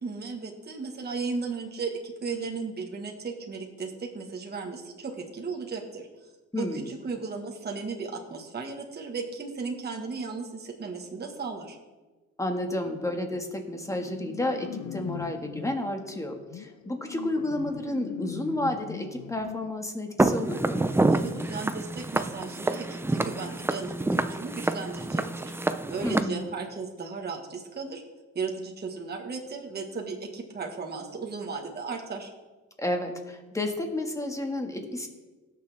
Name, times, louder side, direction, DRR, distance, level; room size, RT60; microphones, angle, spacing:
voice 1, 0.0-6.3 6.6-11.8 21.1-25.5 25.9-28.0 28.3-32.3, right 4 dB, 35° right, 1 dB, 1.5 m, -35 dB
voice 2, 6.5-6.9 12.4-20.9 26.0-26.5 32.8-35.1, left 1 dB, 10° left, 3 dB, 1.8 m, -31 dB
sound 1, 12.8-13.1 13.4-15.8 16.5-19.7, left 11 dB, 70° left, 0.6 m, -41 dB
Walk footsteps, 20.2-26.2, right 2 dB, 10° right, 0.5 m, -27 dB
17.5 x 6.9 x 3.5 m, 1.2 s
cardioid pair, 90°, 30 cm